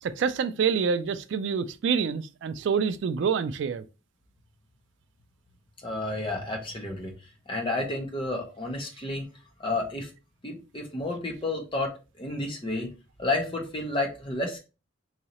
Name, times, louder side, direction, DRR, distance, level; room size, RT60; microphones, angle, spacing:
voice 1, 0.0-3.8, right 6 dB, 65° right, 0.3 m, -27 dB
voice 2, 5.8-7.1 7.5-9.3 9.6-10.1 10.4-12.9 13.2-14.6, left 2 dB, 25° left, 0.9 m, -31 dB
4.0 x 2.7 x 2.8 m
head